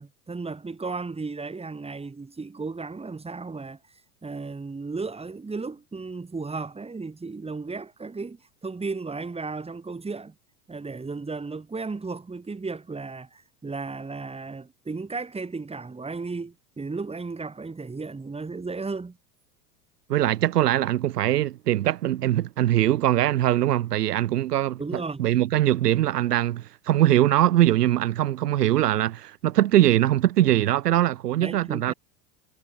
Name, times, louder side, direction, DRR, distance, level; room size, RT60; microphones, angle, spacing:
voice 1, 0.0-3.8 4.2-10.3 10.7-19.2 24.8-25.3 31.4-31.9, right 4 dB, 10° right, 3.8 m, -34 dB
voice 2, 20.1-31.9, right 13 dB, 80° right, 1.9 m, -22 dB
hypercardioid pair, 95°, 47 cm